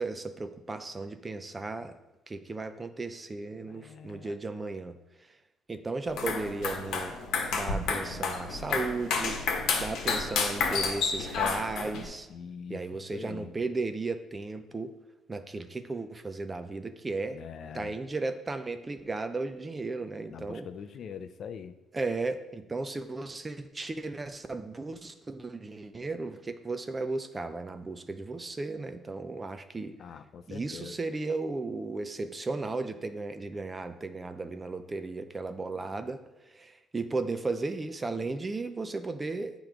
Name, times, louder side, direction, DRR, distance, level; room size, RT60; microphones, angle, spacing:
voice 1, 0.0-1.9 2.3-5.0 5.7-7.2 7.5-9.4 9.8-12.3 12.7-14.9 15.3-17.4 17.7-20.7 21.9-30.0 30.5-36.2 36.5-39.5, right 3 dB, 20° right, 10 dB, 0.4 m, -35 dB
voice 2, 3.7-4.4 12.3-12.8 13.1-13.5 17.3-17.9 20.3-21.7 30.0-30.9, left 7 dB, 50° left, 10 dB, 0.4 m, -43 dB
sound 1, 6.1-12.1, left 5 dB, 70° left, 1.1 m, -30 dB
8.5 x 3.0 x 5.0 m, 0.97 s
cardioid pair, 135°, 0 cm